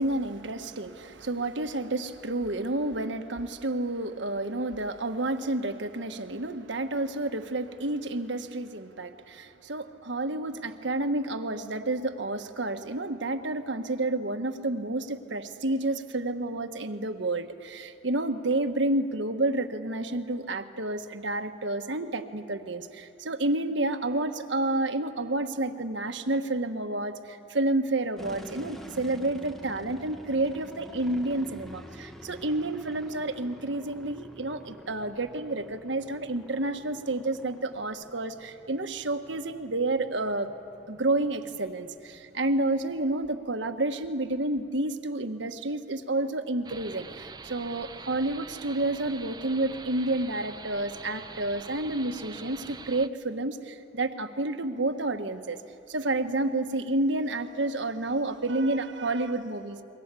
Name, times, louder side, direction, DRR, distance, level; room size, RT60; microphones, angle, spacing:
voice 1, 0.0-40.5 40.9-55.6 55.9-59.8, right 2 dB, 75° right, 7 dB, 1.4 m, -30 dB
sound 1, 28.2-43.0, equal, ahead, 1.0 m, -48 dB
sound 2, 46.6-53.1, right 4 dB, 20° right, 0.5 m, -44 dB
29.0 x 23.0 x 8.3 m, 2.6 s
head